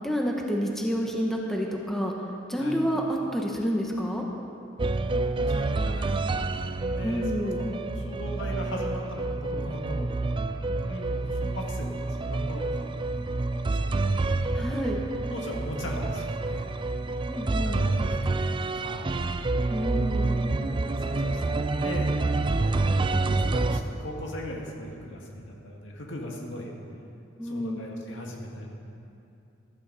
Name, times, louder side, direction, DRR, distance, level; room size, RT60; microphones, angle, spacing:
voice 1, 0.0-2.1 2.5-4.3 7.0-7.6 14.5-15.0 17.3-17.8 19.7-20.4 27.4-27.8, equal, ahead, -1 dB, 1.2 m, -29 dB
voice 2, 4.7-6.6 6.9-7.2 7.5-10.1 10.7-14.2 15.3-16.8 17.6-19.1 20.2-22.8 23.4-26.7 27.4-28.7, equal, 70° left, -1 dB, 2.1 m, -39 dB
sound 1, 4.8-23.8, right 2 dB, 25° right, 0.4 m, -28 dB
15.5 x 13.5 x 4.2 m, 2.7 s
head